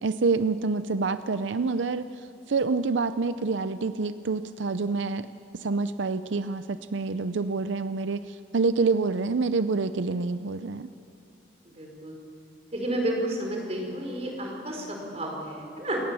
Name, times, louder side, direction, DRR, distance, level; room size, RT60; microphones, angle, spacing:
voice 1, 0.0-2.1 2.5-5.3 5.5-10.9, right 4 dB, 90° right, 12 dB, 0.6 m, -27 dB
voice 2, 11.6-12.2 12.7-16.0, right 1 dB, 35° right, 1 dB, 4.8 m, -31 dB
29.0 x 18.5 x 7.0 m, 2.6 s
head